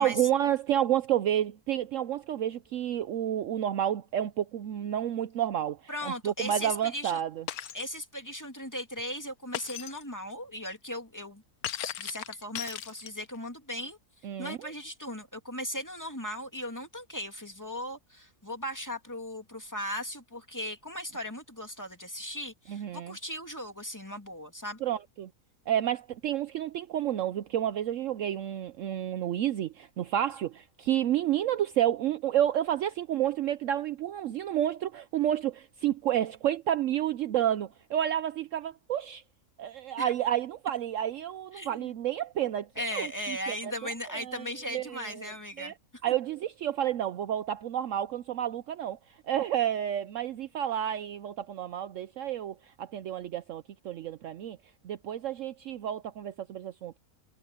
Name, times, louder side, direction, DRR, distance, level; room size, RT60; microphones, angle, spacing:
voice 1, 0.0-7.4 14.2-14.6 22.7-23.2 24.8-25.3 25.7-39.2 39.6-42.7 42.9-43.7 44.2-44.4 44.7-45.7 46.0-49.0 49.3-54.6 54.8-57.0, right 11 dB, 65° right, 0.9 m, -30 dB
voice 2, 5.9-7.2 7.7-11.4 11.8-14.0 14.4-24.8 40.0-40.1 41.5-41.9 42.8-45.7 46.1-46.2, equal, 10° left, 2.4 m, -37 dB
Shatter, 7.5-7.9 9.5-10.0 11.6-13.4, left 11 dB, 75° left, 1.2 m, -37 dB
omnidirectional pair, 1.6 m